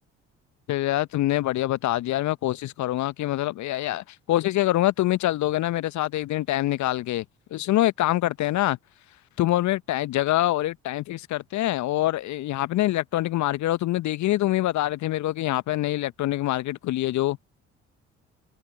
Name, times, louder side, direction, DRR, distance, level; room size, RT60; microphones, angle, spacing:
voice 1, 0.7-7.2 7.5-8.8 9.4-17.4, left 15 dB, 50° left, 0.8 m, -25 dB
figure-of-eight pair, 50°, 36 cm